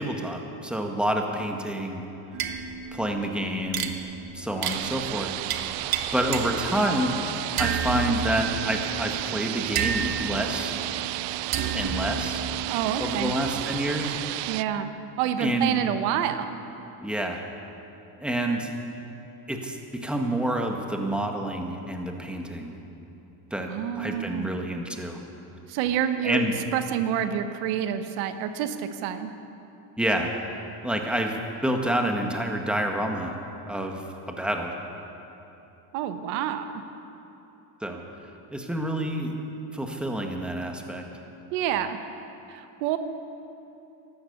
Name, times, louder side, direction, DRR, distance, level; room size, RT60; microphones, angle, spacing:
voice 1, 0.0-2.0 2.9-3.9 4.3-5.3 5.8-5.9 6.1-7.2 7.6-10.8 11.7-12.5 13.0-14.2 15.4-15.8 17.0-17.4 18.2-18.7 19.5-22.7 23.5-23.7 24.0-25.2 26.2-26.5 30.0-30.3 30.8-31.4 31.6-33.4 33.7-34.7 37.8-38.0 38.5-39.3 39.7-41.0, right 1 dB, ahead, 2 dB, 1.7 m, -28 dB
sound 1, 2.3-7.1 7.6-14.1, right 6 dB, 45° right, 1.3 m, -32 dB
sound 2, 4.6-14.6, right 17 dB, 65° right, 0.5 m, -32 dB
voice 2, 12.7-13.3 14.5-14.9 15.2-16.6 23.7-24.6 25.7-26.5 26.7-29.3 35.9-36.8 41.5-42.0 42.5-43.0, right 9 dB, 85° right, 9 dB, 1.1 m, -28 dB
13.5 x 11.5 x 8.1 m, 3.0 s
supercardioid pair, 95°, 48 cm